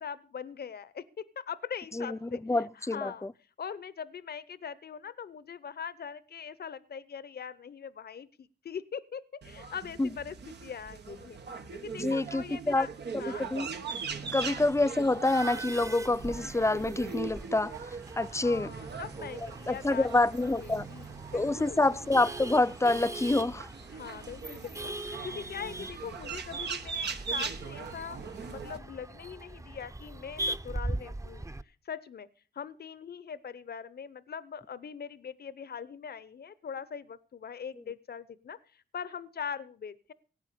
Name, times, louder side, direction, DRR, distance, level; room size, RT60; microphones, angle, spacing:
voice 1, 0.0-2.4 2.7-3.3 3.6-10.4 10.6-11.4 11.7-12.9 13.2-13.5 14.2-14.5 18.3-20.3 20.6-21.8 23.9-32.3 32.5-40.1, left 7 dB, 65° left, 0.8 m, -42 dB
voice 2, 2.4-3.3 10.0-10.1 12.0-12.9 13.1-13.2 13.5-13.7 14.3-17.7 18.2-18.7 19.7-20.9 21.3-23.7, left 2 dB, 15° left, 0.6 m, -27 dB
sound 1, 9.4-28.8, right 5 dB, 85° right, 1.6 m, -41 dB
Male speech man speaking / Laughter / Chatter, 14.1-31.6, right 2 dB, 20° right, 0.8 m, -41 dB
17.0 x 9.0 x 6.8 m
cardioid pair, 45°, 17 cm